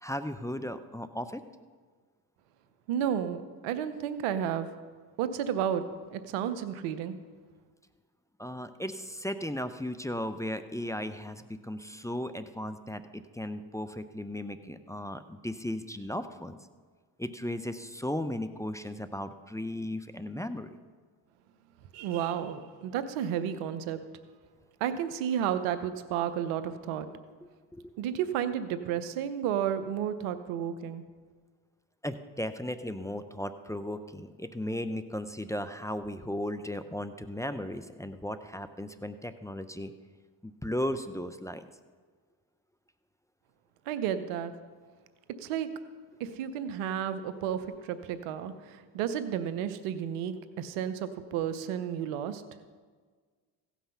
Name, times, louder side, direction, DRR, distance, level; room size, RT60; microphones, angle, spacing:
voice 1, 0.0-1.4 8.4-16.6 17.2-20.8 27.7-27.9 32.0-39.9 40.4-41.7, left 1 dB, 5° left, 9 dB, 0.6 m, -36 dB
voice 2, 2.9-4.7 5.2-5.8 6.1-7.2 21.9-24.0 24.8-27.1 28.0-31.0 43.9-44.5 45.4-45.7 46.2-48.5 48.9-52.4, right 9 dB, 85° right, 12 dB, 0.9 m, -32 dB
16.0 x 5.9 x 5.7 m, 1.5 s
supercardioid pair, 60°, 49 cm